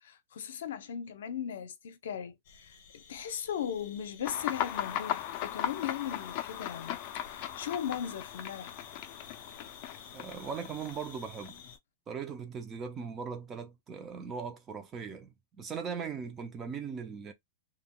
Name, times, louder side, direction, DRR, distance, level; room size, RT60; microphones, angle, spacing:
voice 1, 0.0-8.7, left 9 dB, 80° left, 0.7 m, -38 dB
sound 1, 2.4-11.8, left 5 dB, 60° left, 0.9 m, -52 dB
sound 2, 4.2-11.7, left 12 dB, 40° left, 0.4 m, -38 dB
voice 2, 10.1-11.6 12.1-17.3, right 6 dB, 20° right, 0.6 m, -39 dB
3.6 x 2.3 x 2.2 m
supercardioid pair, 150°, 0 cm